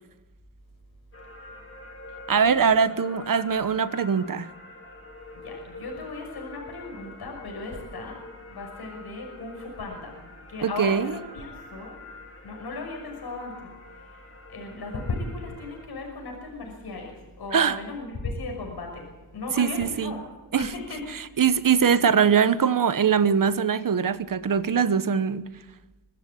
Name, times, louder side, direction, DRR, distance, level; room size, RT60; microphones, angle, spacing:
sound 1, 1.1-15.8, left 2 dB, 30° left, 3.9 m, -45 dB
voice 1, 2.3-4.5 10.6-11.1 17.5-17.8 19.6-20.2 20.5-20.7 21.1-25.4, right 7 dB, 55° right, 1.2 m, -22 dB
voice 2, 5.3-8.2 8.5-10.2 10.5-12.0 12.4-14.2 14.5-20.2 20.6-21.0, left 3 dB, 70° left, 6.0 m, -36 dB
23.5 x 14.0 x 8.6 m
cardioid pair, 95°, 40 cm